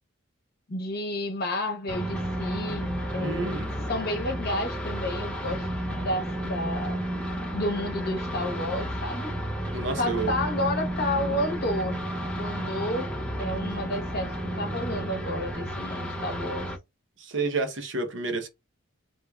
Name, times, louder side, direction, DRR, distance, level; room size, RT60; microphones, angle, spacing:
voice 1, 0.7-3.5 3.9-7.0 7.5-9.3 10.0-12.0 12.4-16.7, left 1 dB, 50° left, 1.0 m, -31 dB
sound 1, 1.9-16.8, equal, 5° left, 0.6 m, -32 dB
voice 2, 3.2-3.7 9.7-10.3 17.2-18.5, right 3 dB, 65° right, 0.9 m, -29 dB
3.4 x 3.1 x 2.3 m
head